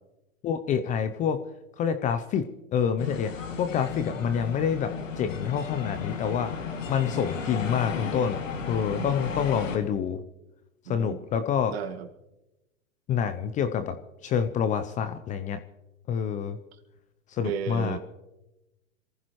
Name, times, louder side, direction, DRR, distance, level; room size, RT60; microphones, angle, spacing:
voice 1, 0.4-1.4 1.8-2.4 2.7-4.9 5.2-6.5 6.9-8.4 8.7-10.2 10.9-11.7 13.1-14.0 14.2-15.6 16.1-16.6 17.3-18.0, left 7 dB, 20° left, 10 dB, 0.7 m, -27 dB
sound 1, 3.0-9.8, left 6 dB, 70° left, 2.4 m, -34 dB
voice 2, 8.9-9.4 10.9-11.2 11.7-12.1 17.4-18.0, right 8 dB, 50° right, 6 dB, 1.9 m, -34 dB
27.0 x 15.0 x 3.2 m, 0.98 s
figure-of-eight pair, 110°, 39 cm